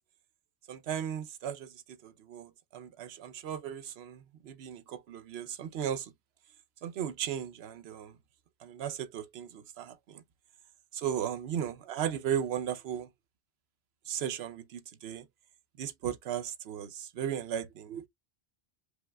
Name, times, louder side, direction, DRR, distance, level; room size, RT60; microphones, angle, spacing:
voice 1, 0.7-6.1 6.8-8.2 8.6-10.2 10.9-13.1 14.1-15.3 15.8-18.1, right 9 dB, 70° right, 0.9 m, -36 dB
5.1 x 3.1 x 2.3 m
omnidirectional pair, 1.1 m